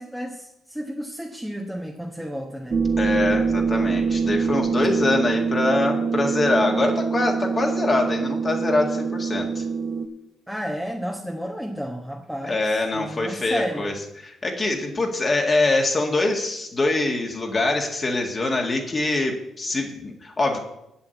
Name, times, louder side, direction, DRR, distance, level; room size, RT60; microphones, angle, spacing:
voice 1, 0.0-2.8 10.5-12.6 12.9-13.9, equal, ahead, 0 dB, 1.2 m, -32 dB
sound 1, 2.7-10.1, right 5 dB, 45° right, 0.8 m, -24 dB
voice 2, 3.0-9.6 12.4-13.9 14.2-20.6, left 2 dB, 30° left, 2 dB, 1.9 m, -24 dB
7.6 x 7.2 x 8.4 m, 0.84 s
cardioid pair, 90°, 0 cm